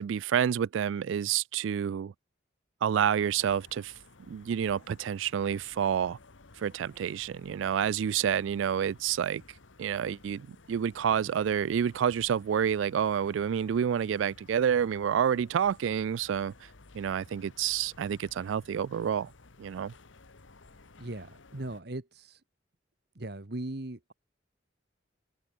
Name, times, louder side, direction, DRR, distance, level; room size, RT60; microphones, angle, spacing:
voice 1, 0.0-2.1 2.8-3.9 4.3-6.2 6.6-9.4 9.8-16.7 16.9-19.3 19.6-19.9, right 8 dB, 75° right, 0.3 m, -29 dB
sound 1, 3.2-21.8, left 3 dB, 75° left, 1.4 m, -56 dB
voice 2, 21.0-22.4 23.1-24.1, right 1 dB, 55° right, 1.3 m, -39 dB
open air
head